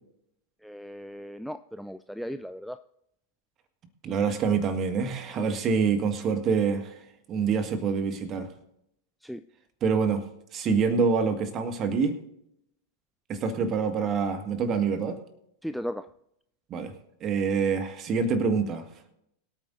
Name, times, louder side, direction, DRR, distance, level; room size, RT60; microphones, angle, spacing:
voice 1, 0.6-2.8 9.2-9.4 15.6-16.1, equal, ahead, 10 dB, 0.3 m, -36 dB
voice 2, 4.0-7.0 7.3-8.5 9.8-10.3 10.5-12.2 13.3-15.2 16.7-16.9 17.2-18.9, right 5 dB, 30° right, 8 dB, 1.7 m, -26 dB
23.0 x 9.0 x 2.6 m, 0.77 s
figure-of-eight pair, 90°, 0 cm